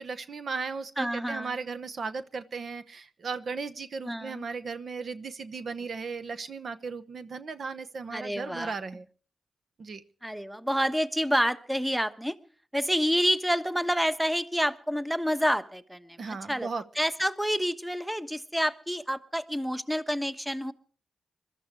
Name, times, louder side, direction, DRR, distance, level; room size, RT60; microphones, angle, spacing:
voice 1, 0.0-9.1 9.8-10.0 16.2-16.8, right 4 dB, 60° right, 12 dB, 0.9 m, -36 dB
voice 2, 1.0-1.5 4.1-4.4 8.1-8.8 10.2-12.4 12.7-16.7 17.0-20.7, equal, 5° right, 11 dB, 1.2 m, -28 dB
21.5 x 13.0 x 4.7 m, 0.42 s
supercardioid pair, 50°, 0 cm